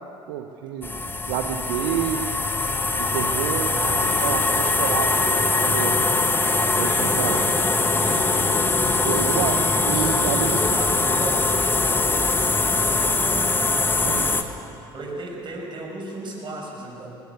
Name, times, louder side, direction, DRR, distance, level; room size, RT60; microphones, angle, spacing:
voice 1, 0.3-1.0 1.2-2.2 2.8-6.0 6.7-7.4 9.0-10.6 14.0-14.3, right 10 dB, 65° right, 4 dB, 1.1 m, -29 dB
sound 1, 0.8-14.4, left 3 dB, 15° left, 1.7 m, -22 dB
Harp, 3.7-12.4, left 8 dB, 65° left, 1.6 m, -40 dB
voice 2, 7.0-7.3 10.2-11.5 14.9-17.2, right 2 dB, 35° right, 0 dB, 6.6 m, -34 dB
22.0 x 18.5 x 8.3 m, 2.7 s
figure-of-eight pair, 55°, 13 cm